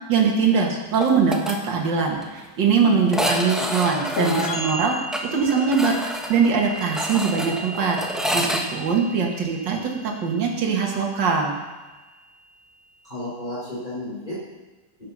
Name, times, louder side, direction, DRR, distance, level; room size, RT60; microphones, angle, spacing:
voice 1, 0.1-5.0 5.3-8.0 8.3-11.6, right 5 dB, 80° right, 0 dB, 2.1 m, -22 dB
sound 1, 1.0-1.5 1.8-1.9 2.2-2.3 3.1-8.6, equal, ahead, 0.7 m, -28 dB
voice 2, 2.9-3.9 13.0-14.4, left 1 dB, 25° left, -10 dB, 4.0 m, -34 dB
sound 2, 4.2-11.7, left 1 dB, 50° left, 1.5 m, -34 dB
10.5 x 8.5 x 6.1 m, 1.2 s
omnidirectional pair, 1.9 m